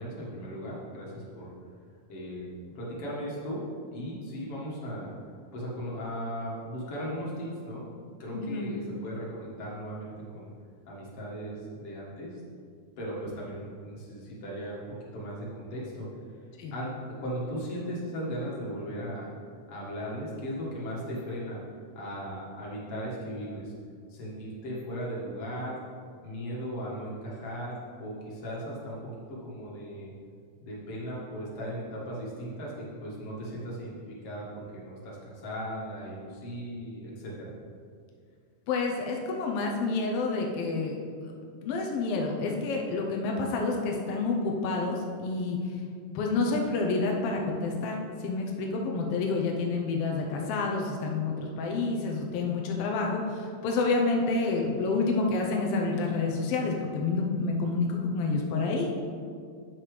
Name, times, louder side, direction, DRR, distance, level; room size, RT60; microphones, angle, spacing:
voice 1, 0.0-1.5 2.1-2.5 2.8-3.6 3.9-5.1 5.5-7.9 8.2-10.5 10.9-12.3 13.0-16.1 16.7-16.9 17.2-19.3 19.7-21.6 22.0-23.7 24.1-25.8 26.2-30.1 30.6-37.5, equal, 50° left, -5 dB, 2.5 m, -37 dB
voice 2, 8.3-8.7 16.6-16.7 38.7-41.0 41.2-41.4 41.6-45.6 46.1-58.9, left 3 dB, 80° left, 0 dB, 1.3 m, -29 dB
8.3 x 5.8 x 5.0 m, 2.2 s
omnidirectional pair, 3.7 m